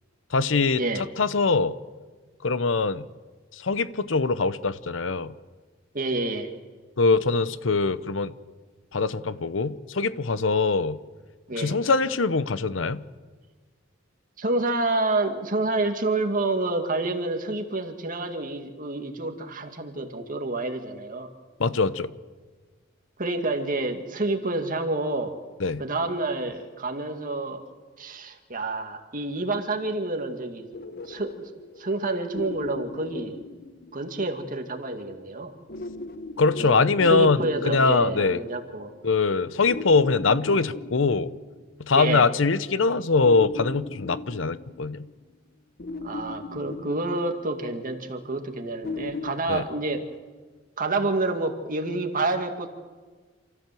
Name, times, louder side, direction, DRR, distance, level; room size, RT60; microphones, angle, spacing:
voice 1, 0.3-1.7 2.4-3.0 3.5-5.3 7.0-8.3 8.9-11.0 11.5-13.0 21.6-22.1 25.6-25.8 36.4-38.4 39.0-41.3 41.8-45.1 49.5-49.6, left 4 dB, 80° left, 15 dB, 0.8 m, -23 dB
voice 2, 5.9-6.5 11.5-11.8 14.4-21.3 23.2-25.3 25.8-27.6 28.0-30.7 31.1-31.5 31.8-33.4 33.9-35.5 36.6-38.9 41.9-42.3 46.0-50.0 50.8-52.7, right 2 dB, 45° right, 5 dB, 2.1 m, -28 dB
sound 1, 30.7-34.4 35.7-39.0 39.7-41.8 43.2-45.3 45.8-47.8 48.8-49.3, left 3 dB, 55° left, 0.9 m, -39 dB
28.0 x 14.0 x 7.7 m, 1.4 s
head